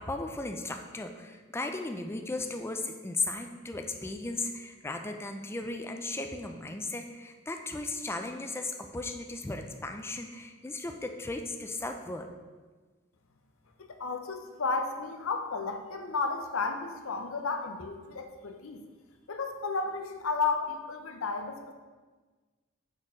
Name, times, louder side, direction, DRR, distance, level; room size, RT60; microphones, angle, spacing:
voice 1, 0.0-12.3, left 2 dB, 10° left, 5 dB, 0.4 m, -36 dB
voice 2, 13.8-18.8 19.3-21.7, left 4 dB, 70° left, 6 dB, 0.7 m, -33 dB
6.1 x 4.3 x 5.0 m, 1.4 s
head